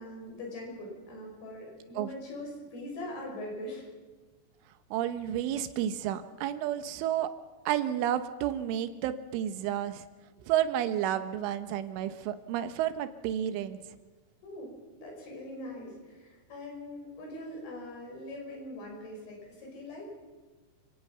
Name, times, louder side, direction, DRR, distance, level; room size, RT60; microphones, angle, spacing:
voice 1, 0.0-3.9 6.8-6.9 14.4-20.1, left 1 dB, 50° left, 0 dB, 7.5 m, -42 dB
voice 2, 4.9-7.3 7.7-10.1 10.5-13.8, right 11 dB, 80° right, 10 dB, 3.5 m, -31 dB
30.0 x 17.0 x 5.7 m, 1.3 s
omnidirectional pair, 5.7 m